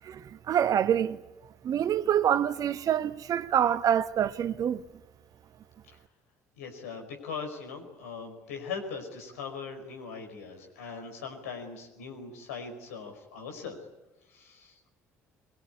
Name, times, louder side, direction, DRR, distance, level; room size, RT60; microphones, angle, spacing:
voice 1, 0.5-1.2 1.6-4.8, right 9 dB, 45° right, 1.2 m, -26 dB
voice 2, 6.6-13.8 14.3-14.8, left 5 dB, 75° left, 5.3 m, -40 dB
23.5 x 23.0 x 9.7 m
figure-of-eight pair, 55°, 8 cm